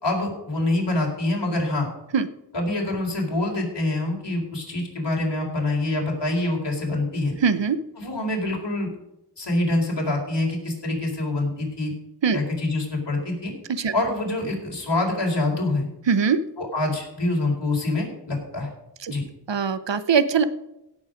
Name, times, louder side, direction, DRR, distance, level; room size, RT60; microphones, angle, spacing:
voice 1, 0.0-1.9 2.5-7.3 8.0-8.9 9.4-11.9 12.3-13.5 13.9-15.9 16.6-18.7 19.1-19.2, left 2 dB, 70° left, -1 dB, 4.2 m, -25 dB
voice 2, 7.4-7.8 12.2-12.4 13.7-13.9 16.1-16.4 19.0-19.1 19.5-20.4, right 6 dB, 75° right, 13 dB, 0.9 m, -21 dB
16.5 x 7.3 x 5.1 m, 0.90 s
wide cardioid pair, 70°, 43 cm